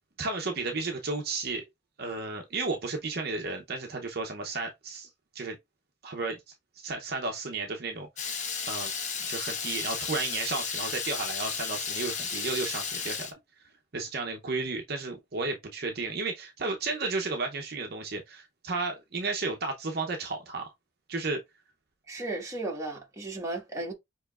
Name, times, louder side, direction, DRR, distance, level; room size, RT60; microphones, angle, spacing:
voice 1, 0.2-1.6 2.0-5.1 5.3-5.6 6.0-6.4 6.8-8.1 8.7-8.9 9.3-13.3 13.9-20.7 21.1-21.4, right 3 dB, 55° right, 0.7 m, -33 dB
Water tap faucet / Liquid, 8.2-13.3, left 6 dB, 40° left, 1.0 m, -33 dB
voice 2, 22.1-23.9, right 2 dB, 15° right, 1.5 m, -35 dB
6.8 x 3.0 x 2.4 m
head